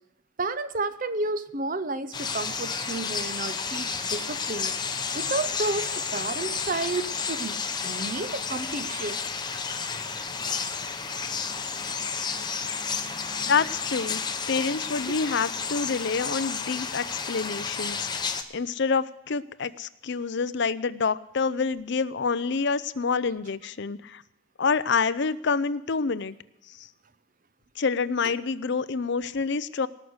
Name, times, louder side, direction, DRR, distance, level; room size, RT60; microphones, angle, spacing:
voice 1, 0.4-4.8 5.1-7.6 7.8-9.2 15.1-15.2, right 3 dB, 40° right, 12 dB, 0.8 m, -31 dB
sound 1, 2.1-18.4, left 5 dB, 20° left, 0.9 m, -31 dB
voice 2, 13.4-14.2 14.5-18.1 18.5-24.2 24.6-26.4 26.7-26.9 27.8-29.9, left 5 dB, 55° left, 15 dB, 0.5 m, -27 dB
19.0 x 6.5 x 7.9 m, 0.87 s
head